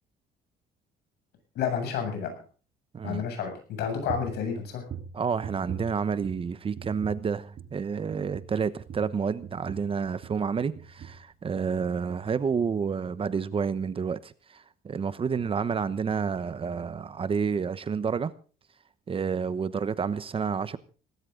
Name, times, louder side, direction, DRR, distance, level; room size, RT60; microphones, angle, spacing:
voice 1, 1.5-2.3 3.0-4.8, left 7 dB, 75° left, 5 dB, 7.7 m, -30 dB
sound 1, 4.1-4.4 4.9-6.5 6.7-7.3 7.5-7.8 8.1-10.5 10.7-11.2 11.5-11.7 12.1-12.2, right 7 dB, 55° right, 4.8 m, -41 dB
voice 2, 5.1-18.3 19.1-20.8, right 6 dB, 30° right, 14 dB, 1.1 m, -29 dB
18.5 x 16.5 x 3.9 m, 0.38 s
cardioid pair, 110°, 17 cm